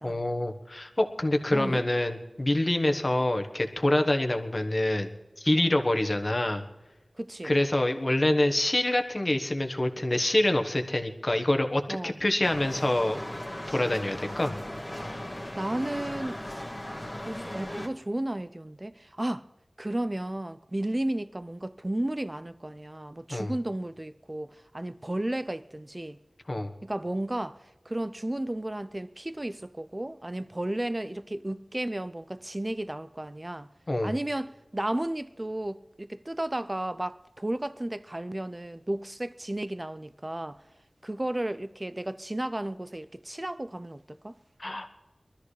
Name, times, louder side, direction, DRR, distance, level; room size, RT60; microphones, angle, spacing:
voice 1, 0.0-5.1 5.4-6.6 7.4-13.2 13.7-14.6 23.3-23.5 26.5-26.7 33.9-34.1 44.6-44.9, left 1 dB, 40° left, 1.3 m, -26 dB
voice 2, 1.5-1.8 2.9-3.1 5.6-5.8 7.2-7.5 11.9-12.2 15.6-16.7 17.2-19.5 19.8-26.2 26.8-33.7 34.0-40.6 41.0-44.4, right 1 dB, 30° right, 0.6 m, -33 dB
sound 1, 12.4-17.9, left 1 dB, 20° left, 1.9 m, -37 dB
22.5 x 13.0 x 3.3 m
wide cardioid pair, 50°, 0 cm